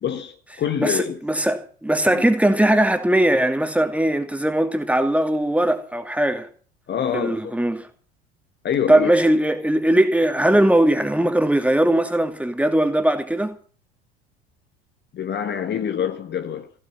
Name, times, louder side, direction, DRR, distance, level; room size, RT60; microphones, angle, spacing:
voice 1, 0.0-1.2 2.1-2.3 6.9-7.6 8.6-9.1 15.1-16.8, left 8 dB, 35° left, 1.4 m, -26 dB
voice 2, 0.8-6.5 7.1-7.9 8.9-13.5, right 1 dB, 5° right, 2.4 m, -19 dB
15.5 x 8.6 x 9.3 m
figure-of-eight pair, 70°, 32 cm